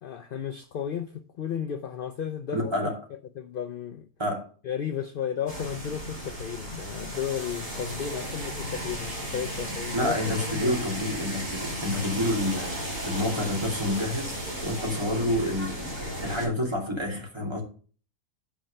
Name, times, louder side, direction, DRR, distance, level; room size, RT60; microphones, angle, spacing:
voice 1, 0.0-2.7 3.4-4.1 4.6-10.2 10.4-10.8, left 8 dB, 65° left, 0.5 m, -33 dB
voice 2, 2.5-3.0 4.2-4.5 9.9-12.8 13.0-17.6, left 1 dB, 20° right, 2.6 m, -28 dB
sound 1, 5.5-16.5, equal, 65° right, 6.2 m, -35 dB
9.3 x 4.5 x 6.5 m
omnidirectional pair, 1.5 m